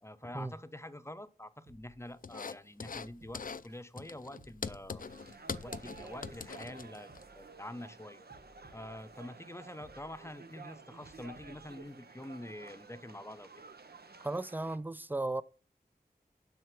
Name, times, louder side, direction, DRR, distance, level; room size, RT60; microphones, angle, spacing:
voice 1, 0.0-5.0 5.6-8.3 8.7-13.5, left 1 dB, 15° left, 0.7 m, -46 dB
sound 1, 1.7-2.4 2.9-3.8 4.2-5.1 5.6-6.5 6.9-7.9 8.3-9.2 9.7-10.6 11.0-11.9 12.4-12.5, right 1 dB, 90° right, 1.6 m, -60 dB
sound 2, 2.2-3.1 3.3-3.7 4.0-7.2, left 5 dB, 55° left, 0.5 m, -42 dB
sound 3, 5.0-14.8, right 4 dB, 70° right, 0.8 m, -53 dB
voice 2, 14.2-15.4, right 2 dB, 10° right, 0.4 m, -35 dB
7.8 x 5.7 x 6.0 m
wide cardioid pair, 60°, 17 cm